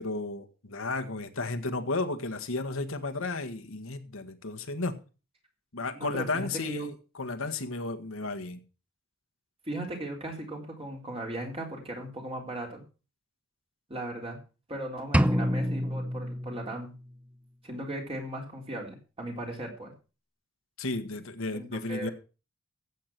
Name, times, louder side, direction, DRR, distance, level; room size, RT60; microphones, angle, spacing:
voice 1, 0.0-5.0 5.7-8.6 20.8-22.1, left 3 dB, 70° left, 1.6 m, -33 dB
voice 2, 5.9-6.9 9.7-12.8 13.9-14.4 14.7-16.9 17.6-19.9 21.5-22.1, right 1 dB, 30° right, 3.8 m, -37 dB
sound 1, 15.1-17.1, equal, 5° right, 0.6 m, -27 dB
13.0 x 8.5 x 6.0 m
head